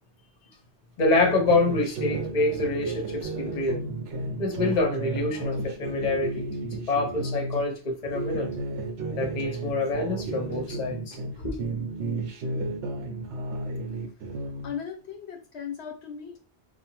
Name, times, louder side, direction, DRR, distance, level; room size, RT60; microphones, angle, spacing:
voice 1, 1.0-3.8 4.4-8.5 9.2-11.2 11.4-11.6, left 2 dB, 45° left, 0.8 m, -26 dB
sound 1, 1.1-7.6 8.0-11.3 11.6-14.7, right 2 dB, 70° right, 0.8 m, -33 dB
voice 2, 14.6-16.4, left 7 dB, 75° left, 0.8 m, -37 dB
2.7 x 2.2 x 2.9 m
omnidirectional pair, 1.2 m